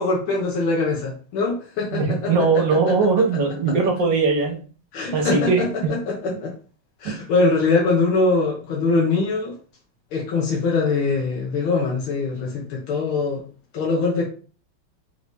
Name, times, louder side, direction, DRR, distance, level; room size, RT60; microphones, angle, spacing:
voice 1, 0.0-2.6 4.9-6.5 7.0-9.6 10.1-13.4 13.7-14.3, left 3 dB, 90° left, 1.8 m, -22 dB
voice 2, 1.9-4.6 5.1-5.7 7.0-7.1, right 4 dB, 65° right, 1.5 m, -20 dB
4.8 x 2.6 x 3.4 m
omnidirectional pair, 2.2 m